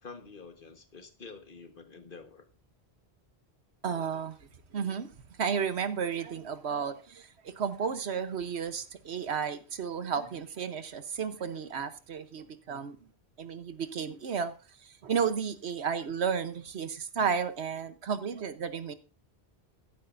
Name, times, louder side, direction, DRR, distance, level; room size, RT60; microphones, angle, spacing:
voice 1, 0.0-2.4, left 4 dB, 55° left, 1.6 m, -48 dB
voice 2, 3.8-4.4 4.7-5.1 5.4-13.0 13.4-14.5 14.8-18.9, right 6 dB, 85° right, 1.3 m, -33 dB
15.0 x 11.5 x 2.6 m
omnidirectional pair, 1.1 m